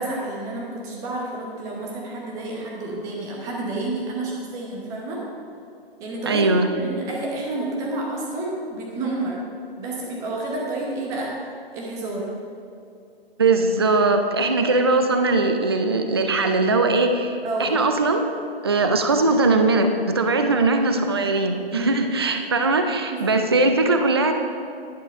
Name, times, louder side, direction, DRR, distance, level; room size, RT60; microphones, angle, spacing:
voice 1, 0.0-5.3 6.0-9.4 9.8-11.4 11.7-12.3 17.4-17.8 21.1-21.2 21.7-21.9 23.1-23.2, right 2 dB, 10° right, -2 dB, 0.9 m, -30 dB
voice 2, 6.3-6.7 13.4-18.2 18.6-24.3, right 3 dB, 25° right, 6 dB, 0.4 m, -20 dB
10.5 x 6.1 x 5.1 m, 2.5 s
figure-of-eight pair, 150°, 31 cm